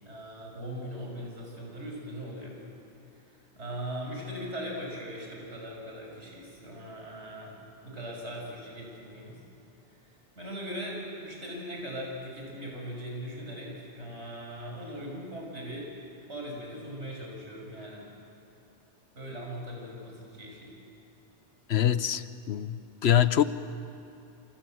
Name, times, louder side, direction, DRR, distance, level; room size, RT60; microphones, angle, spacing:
voice 1, 0.0-2.6 3.6-9.4 10.4-15.9 16.3-18.1 19.2-20.7, equal, 80° right, -1 dB, 6.9 m, -39 dB
voice 2, 21.7-23.4, left 10 dB, 70° left, 13 dB, 1.1 m, -24 dB
27.0 x 26.5 x 7.9 m, 2.7 s
omnidirectional pair, 1.1 m